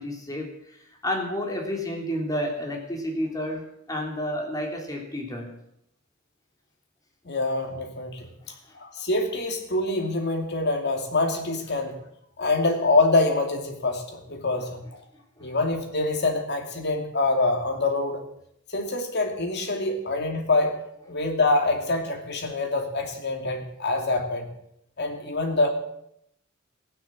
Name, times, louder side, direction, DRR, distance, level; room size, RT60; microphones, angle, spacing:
voice 1, 0.0-5.5, equal, 20° left, 1 dB, 3.4 m, -30 dB
voice 2, 7.2-8.3 8.7-12.0 12.4-15.0 15.4-18.2 18.7-20.8 21.1-24.5 25.0-25.7, left 2 dB, 55° left, 4 dB, 2.6 m, -25 dB
15.0 x 10.5 x 7.6 m, 0.76 s
head